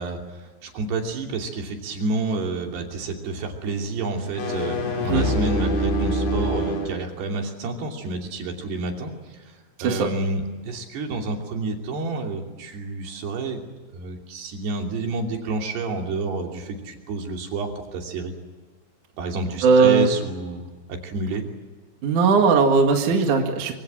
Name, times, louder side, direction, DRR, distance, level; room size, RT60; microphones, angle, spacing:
voice 1, 0.0-9.4 9.8-13.7 13.9-18.3 19.2-21.4, right 3 dB, 70° right, 2 dB, 4.9 m, -29 dB
sound 1, 4.2-7.0, equal, 70° left, 6.3 m, -25 dB
voice 2, 19.6-20.1 22.0-23.7, right 4 dB, 50° right, 3 dB, 3.0 m, -18 dB
25.0 x 25.0 x 7.6 m, 1.3 s
omnidirectional pair, 5.1 m